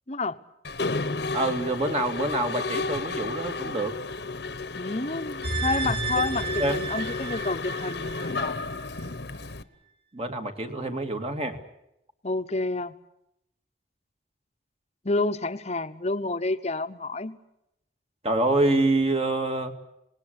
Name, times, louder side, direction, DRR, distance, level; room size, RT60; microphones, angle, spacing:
voice 1, 0.1-0.4 4.8-8.6 12.2-12.9 15.0-17.4, left 3 dB, 35° left, 11 dB, 1.0 m, -29 dB
Mechanisms, 0.6-9.6, left 3 dB, 65° left, 1.2 m, -32 dB
voice 2, 1.3-4.0 6.2-6.3 6.6-6.8 10.1-11.6 18.2-19.7, right 2 dB, 35° right, 5 dB, 2.3 m, -26 dB
sound 1, 5.4-8.7 9.0-9.1, right 3 dB, 55° right, 4.0 m, -32 dB
26.0 x 20.0 x 8.3 m, 0.82 s
head